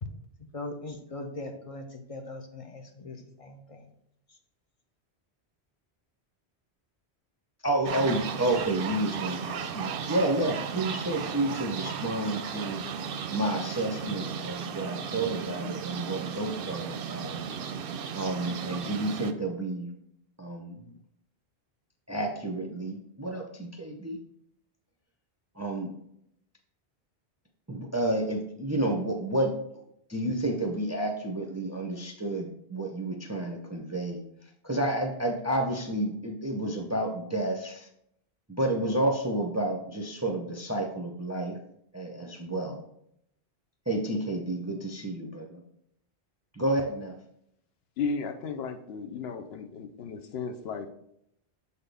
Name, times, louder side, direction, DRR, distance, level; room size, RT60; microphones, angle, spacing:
voice 1, 0.0-3.9 4.3-4.4, left 2 dB, 40° left, 4 dB, 0.5 m, -40 dB
voice 2, 7.6-12.8 13.3-17.4 18.1-19.9 20.4-20.9 22.1-24.2 25.6-25.9 27.7-29.5 30.1-34.2 34.6-37.9 38.5-41.6 41.9-42.8 43.9-45.6 46.5-47.2, right 1 dB, 20° right, 2 dB, 0.5 m, -30 dB
sound 1, 7.8-19.3, right 7 dB, 65° right, 0.7 m, -35 dB
voice 3, 48.0-50.9, left 5 dB, 70° left, 7 dB, 0.8 m, -34 dB
7.0 x 4.1 x 3.4 m, 0.75 s
omnidirectional pair, 1.1 m